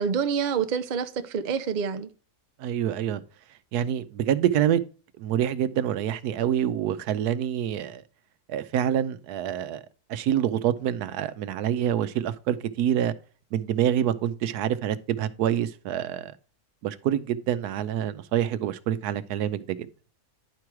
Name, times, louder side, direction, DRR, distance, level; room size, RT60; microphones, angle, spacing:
voice 1, 0.0-2.1, right 6 dB, 45° right, 0.6 m, -27 dB
voice 2, 2.6-3.2 3.7-4.8 5.2-8.0 8.5-9.8 10.1-13.1 13.5-16.3 16.8-19.9, right 10 dB, 85° right, 1.1 m, -26 dB
10.5 x 4.6 x 4.7 m
omnidirectional pair, 1.7 m